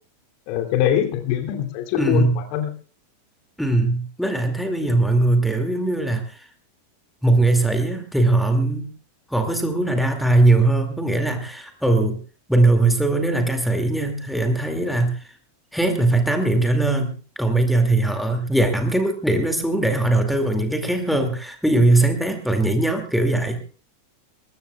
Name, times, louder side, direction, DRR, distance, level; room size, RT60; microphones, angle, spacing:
voice 1, 0.5-2.7, left 10 dB, 45° left, 5 dB, 2.9 m, -23 dB
voice 2, 2.0-2.4 3.6-6.4 7.2-8.9 9.3-12.2 12.5-15.1 15.7-17.1 17.4-23.6, right 2 dB, ahead, 5 dB, 2.4 m, -20 dB
22.5 x 21.0 x 2.4 m, 0.37 s
figure-of-eight pair, 90°, 0 cm